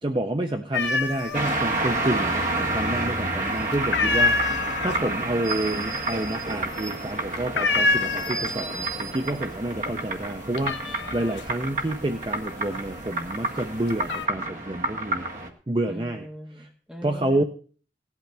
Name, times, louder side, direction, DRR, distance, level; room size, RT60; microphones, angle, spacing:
voice 1, 0.0-15.3 15.7-16.2 17.0-17.4, right 1 dB, 25° right, 5 dB, 0.6 m, -29 dB
sound 1, 0.7-1.6 1.9-2.6 3.0-3.4 3.7-8.8 9.1-9.7 10.0-13.1 13.6-14.3, left 3 dB, 85° left, 0.9 m, -26 dB
sound 2, 1.3-15.5, right 2 dB, 45° right, 1.6 m, -29 dB
sound 3, 1.5-7.7, left 2 dB, 35° left, 0.8 m, -49 dB
voice 2, 15.9-17.4, equal, 5° right, 1 dB, 1.6 m, -40 dB
17.5 x 12.0 x 3.4 m, 0.42 s
head